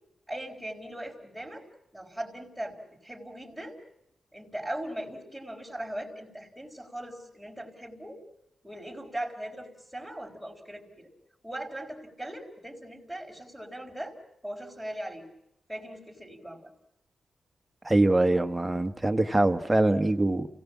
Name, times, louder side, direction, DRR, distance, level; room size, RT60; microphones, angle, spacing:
voice 1, 0.3-1.7 1.9-3.8 4.3-8.2 8.6-11.1 11.4-14.2 14.4-15.3 15.7-16.7, right 1 dB, 5° left, -6 dB, 4.1 m, -39 dB
voice 2, 17.8-20.5, right 2 dB, 15° right, 6 dB, 1.3 m, -23 dB
29.0 x 17.5 x 7.3 m, 0.82 s
cardioid pair, 85°, 0 cm